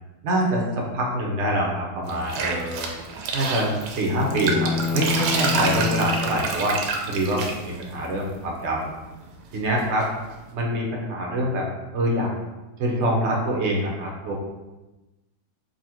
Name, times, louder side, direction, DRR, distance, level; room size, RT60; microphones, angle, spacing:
voice 1, 0.2-2.9 3.3-6.8 7.1-8.9 9.5-10.1 10.5-11.7 11.9-12.3 12.8-14.3, right 1 dB, 60° right, -2 dB, 0.7 m, -25 dB
sound 1, 2.1-8.3 9.3-10.0, right 4 dB, 90° right, 1.4 m, -28 dB
sound 2, 4.2-6.4, left 5 dB, 75° left, 1.3 m, -27 dB
4.1 x 2.8 x 4.3 m, 1.1 s
omnidirectional pair, 2.2 m